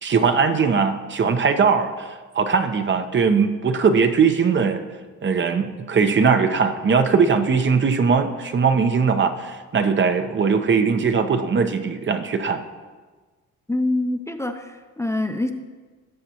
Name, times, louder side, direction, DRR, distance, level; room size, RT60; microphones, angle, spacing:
voice 1, 0.0-4.8 5.2-12.6, right 5 dB, 40° right, 7 dB, 0.8 m, -20 dB
voice 2, 13.7-15.5, left 2 dB, 10° left, 6 dB, 0.6 m, -25 dB
17.5 x 6.8 x 2.9 m, 1.4 s
cardioid pair, 90°, 30 cm